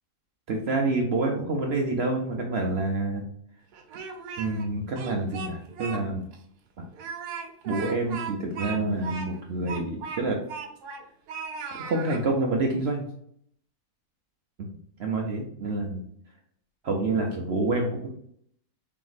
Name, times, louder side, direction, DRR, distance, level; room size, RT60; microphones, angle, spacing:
voice 1, 0.5-3.2 4.4-6.3 6.8-6.9 7.6-10.4 11.8-13.1 14.6-14.7 15.0-16.0 16.8-18.1, right 2 dB, 60° right, 1 dB, 0.6 m, -27 dB
Speech, 3.7-4.7 5.0-6.0 6.3-6.4 6.9-11.0 11.3-12.2, right 5 dB, 90° right, 1.2 m, -37 dB
3.4 x 3.0 x 4.0 m, 0.65 s
omnidirectional pair, 1.7 m